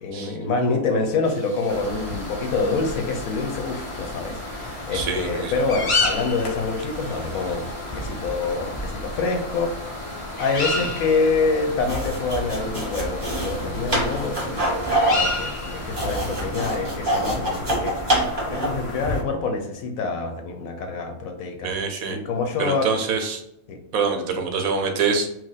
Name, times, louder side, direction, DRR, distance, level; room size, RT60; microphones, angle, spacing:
voice 1, 0.0-9.9 10.4-14.7 15.1-18.2 18.5-21.7 22.1-22.9 23.7-23.8, left 4 dB, 80° left, 5 dB, 1.1 m, -26 dB
sound 1, 1.2-18.9, right 2 dB, 55° right, 1.7 m, -45 dB
sound 2, 1.7-19.2, left 2 dB, 45° left, 0.4 m, -31 dB
voice 2, 4.9-5.5 21.6-22.2 22.6-23.4 23.9-25.3, right 5 dB, 80° right, 4 dB, 1.2 m, -25 dB
sound 3, 11.8-18.9, right 1 dB, 20° right, 1.5 m, -25 dB
4.5 x 2.2 x 4.0 m, 0.79 s
omnidirectional pair, 1.5 m